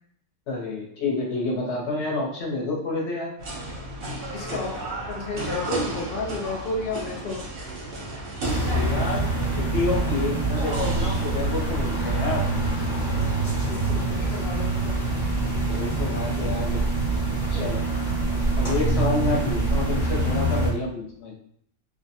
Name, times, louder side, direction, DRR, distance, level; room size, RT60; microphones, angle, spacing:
voice 1, 0.5-3.3 8.7-9.2 9.6-12.4 15.7-16.8 17.5-17.8 18.6-21.3, left 3 dB, 60° left, -1 dB, 0.9 m, -28 dB
sound 1, 3.4-11.9, right 2 dB, 55° right, 0.7 m, -34 dB
voice 2, 4.3-7.4 13.7-15.0 17.5-17.6 19.3-19.4, left 3 dB, 80° left, -1 dB, 0.4 m, -32 dB
sound 2, 7.5-19.2, right 1 dB, 85° right, 1.1 m, -44 dB
sound 3, 8.4-20.7, right 2 dB, 20° left, 0.8 m, -25 dB
2.5 x 2.1 x 2.7 m, 0.65 s
omnidirectional pair, 1.6 m